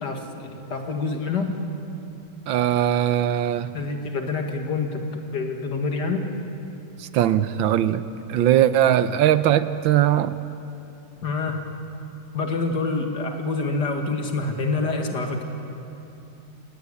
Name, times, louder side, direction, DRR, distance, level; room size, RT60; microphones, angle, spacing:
voice 1, 0.0-1.6 3.7-5.1 5.3-6.3 11.2-11.6 12.3-15.5, left 3 dB, 60° left, 4 dB, 2.7 m, -27 dB
voice 2, 2.5-3.7 7.1-8.0 8.3-10.3, right 11 dB, 85° right, 13 dB, 1.6 m, -20 dB
28.5 x 18.0 x 9.9 m, 2.8 s
omnidirectional pair, 2.1 m